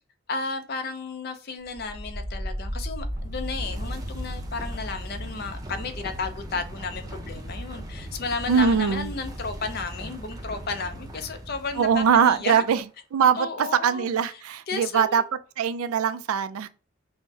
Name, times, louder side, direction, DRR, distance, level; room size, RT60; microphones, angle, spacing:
voice 1, 0.3-12.7 13.3-14.1 14.3-15.3, left 4 dB, 45° left, 0.5 m, -33 dB
sound 1, 1.6-12.4, equal, 15° right, 0.5 m, -36 dB
voice 2, 8.5-9.1 11.8-12.8 13.1-15.2 15.6-16.7, right 7 dB, 80° right, 0.3 m, -22 dB
5.4 x 2.1 x 2.7 m
head